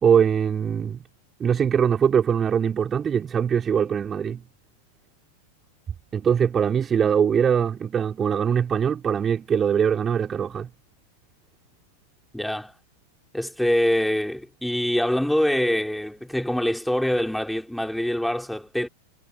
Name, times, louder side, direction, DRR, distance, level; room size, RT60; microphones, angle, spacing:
voice 1, 0.0-1.0 1.4-4.4 6.1-10.7, right 7 dB, 20° right, 3.0 m, -22 dB
voice 2, 12.3-12.7 13.3-18.9, left 1 dB, ahead, 4.4 m, -24 dB
figure-of-eight pair, 90°, 0 cm